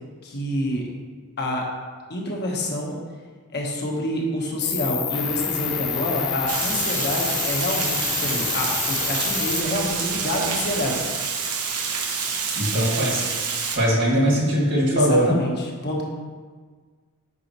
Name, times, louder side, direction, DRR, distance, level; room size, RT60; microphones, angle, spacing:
voice 1, 0.2-0.9 1.4-1.6 2.1-3.0 3.5-11.0 14.9-15.5 15.8-16.0, left 1 dB, 50° left, -1 dB, 1.3 m, -27 dB
Cricket, 4.6-9.6, left 11 dB, 80° left, 0.6 m, -28 dB
sound 1, 5.1-11.0, equal, 5° right, 1.1 m, -37 dB
Water, 6.5-13.8, right 5 dB, 85° right, 1.0 m, -27 dB
voice 2, 12.6-13.2 13.8-15.4, equal, 55° right, -4 dB, 2.0 m, -20 dB
8.4 x 5.7 x 3.1 m, 1.5 s
head